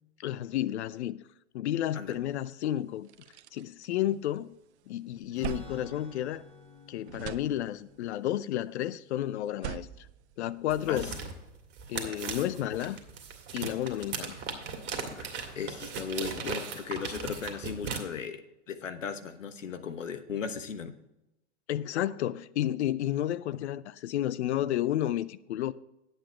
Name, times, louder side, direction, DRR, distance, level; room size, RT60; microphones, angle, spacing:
voice 1, 0.2-1.2 1.5-3.1 3.5-4.6 4.9-6.4 6.9-10.1 10.4-11.2 11.9-13.0 13.5-14.4 21.7-25.7, left 12 dB, 65° left, 0.6 m, -31 dB
sound 1, 2.4-2.5 2.9-4.6 4.9-6.8 7.0-8.1 9.4-11.0, right 13 dB, 65° right, 0.7 m, -43 dB
Strum, 5.3-11.0, left 4 dB, 15° left, 2.0 m, -53 dB
sound 2, 10.7-18.0, right 6 dB, 30° right, 2.0 m, -38 dB
voice 2, 15.5-18.4 18.7-20.9, left 6 dB, 85° left, 1.2 m, -36 dB
10.0 x 8.0 x 4.4 m
hypercardioid pair, 120°, 37 cm